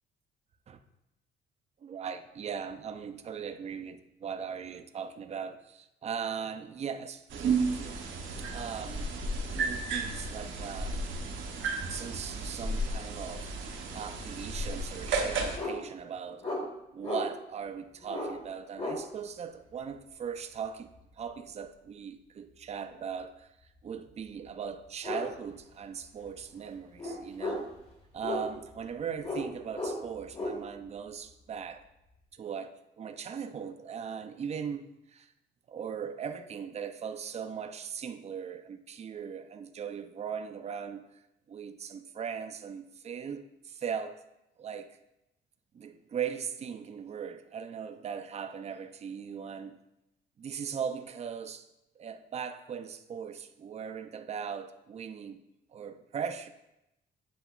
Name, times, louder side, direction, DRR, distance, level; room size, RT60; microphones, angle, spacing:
voice 1, 1.8-8.1 8.5-11.0 11.9-13.5 13.9-16.5 16.9-20.9 21.2-23.5 23.8-27.7 28.1-31.8 32.3-35.3 35.7-41.0 41.5-44.2 44.6-44.9 45.7-49.8 50.4-51.7 52.0-55.4 55.7-56.5, right 7 dB, 35° right, 0.4 m, -39 dB
sound 1, 7.3-15.6, right 3 dB, 75° right, 0.7 m, -33 dB
sound 2, 15.6-15.8 16.4-16.6 17.0-17.2 18.0-18.3 18.8-19.0 21.0-21.2 24.1-24.2 25.0-25.3 25.6-25.7 26.1-26.4 27.0-27.7 28.2-28.7 29.2-29.5 29.7-30.6, left 2 dB, 30° left, 1.2 m, -34 dB
7.9 x 2.9 x 2.3 m
cardioid pair, 90°, 20 cm